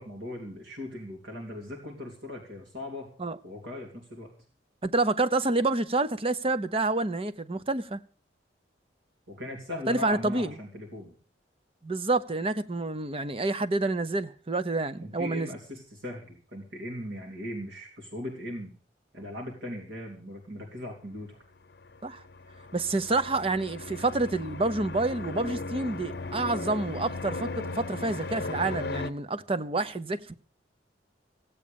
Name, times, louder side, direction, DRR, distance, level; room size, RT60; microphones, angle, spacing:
voice 1, 0.0-3.1 3.4-4.3 9.3-11.1 15.0-18.7 19.1-21.4, left 1 dB, 75° right, 3.4 m, -39 dB
voice 2, 4.8-8.0 9.9-10.5 11.8-15.5 22.0-22.2 22.7-30.3, right 2 dB, 30° right, 0.8 m, -28 dB
sound 1, 21.8-29.1, left 3 dB, 60° left, 1.0 m, -37 dB
16.0 x 8.5 x 7.0 m
head